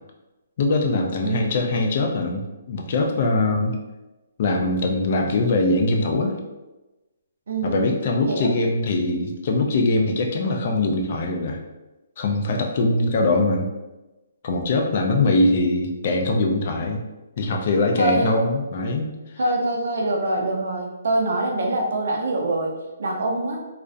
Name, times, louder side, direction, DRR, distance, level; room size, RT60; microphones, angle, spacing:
voice 1, 0.6-3.8 4.4-6.4 7.6-11.6 12.2-13.7 14.4-17.0 17.4-19.1, left 2 dB, 45° left, 2 dB, 0.4 m, -22 dB
voice 2, 1.2-1.6 7.5-8.0 8.3-8.6 18.0-18.3 19.4-23.7, right 2 dB, 70° right, 1 dB, 0.5 m, -24 dB
2.4 x 2.0 x 2.5 m, 1.1 s
hypercardioid pair, 155°, 0 cm